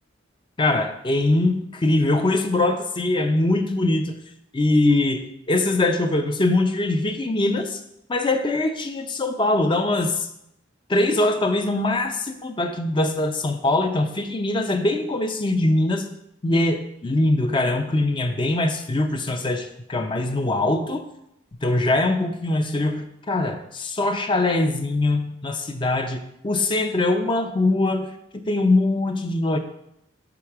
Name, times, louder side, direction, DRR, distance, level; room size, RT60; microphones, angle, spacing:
voice 1, 0.6-4.2 4.5-7.8 8.1-10.3 10.9-16.1 16.4-21.0 21.6-29.6, left 2 dB, 25° left, 6 dB, 0.5 m, -22 dB
5.5 x 4.9 x 5.8 m, 0.82 s
head